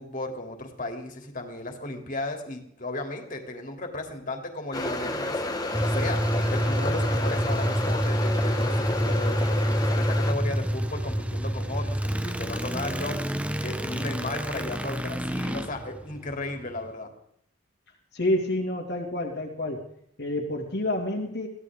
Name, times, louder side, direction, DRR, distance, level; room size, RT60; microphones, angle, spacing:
voice 1, 0.0-5.5 5.8-6.2 6.5-17.1, left 2 dB, 40° left, 3 dB, 3.2 m, -35 dB
sound 1, 4.7-10.3, left 2 dB, 20° left, 1.6 m, -30 dB
sound 2, 5.7-16.9, equal, 5° right, 0.8 m, -28 dB
voice 2, 18.1-19.9 20.2-21.5, left 1 dB, 60° left, -2 dB, 2.6 m, -28 dB
23.0 x 16.5 x 3.8 m, 0.67 s
head